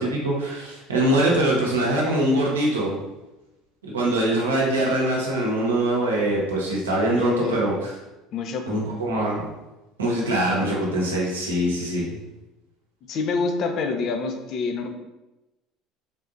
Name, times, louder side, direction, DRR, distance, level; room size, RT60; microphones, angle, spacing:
voice 1, 0.0-2.9 3.8-7.9 8.7-9.4 10.0-12.2, right 1 dB, 90° right, -3 dB, 0.7 m, -23 dB
voice 2, 7.1-7.7 8.3-8.8 13.1-14.9, left 4 dB, 55° left, 5 dB, 0.4 m, -27 dB
3.5 x 2.6 x 2.4 m, 1.0 s
hypercardioid pair, 70°, 0 cm